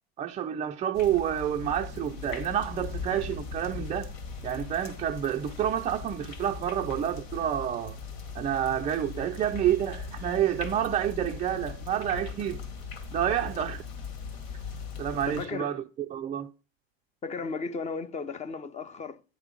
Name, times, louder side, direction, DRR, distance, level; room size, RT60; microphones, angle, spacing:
voice 1, 0.2-4.1 4.4-8.0 8.3-12.6 13.1-13.8 15.0-15.8 16.1-16.5, right 10 dB, 20° right, 0.4 m, -29 dB
sound 1, 0.9-15.5, left 5 dB, 70° left, 1.6 m, -39 dB
voice 2, 15.2-15.8 17.2-19.2, left 4 dB, 20° left, 0.6 m, -35 dB
9.1 x 3.5 x 5.1 m
hypercardioid pair, 100°, 32 cm